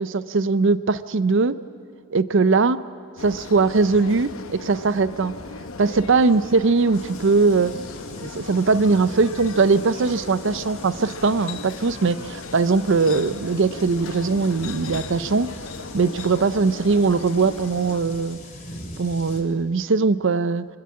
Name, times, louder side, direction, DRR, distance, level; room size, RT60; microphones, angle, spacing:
voice 1, 0.0-1.6 2.1-2.8 3.2-5.3 5.8-7.7 8.2-15.5 15.9-18.4 19.0-20.7, right 4 dB, 55° right, 15 dB, 0.5 m, -20 dB
sound 1, 3.2-18.0, left 3 dB, 65° left, 0.9 m, -37 dB
sound 2, 6.9-19.4, left 2 dB, 35° left, 2.7 m, -42 dB
25.0 x 13.0 x 8.6 m, 2.2 s
head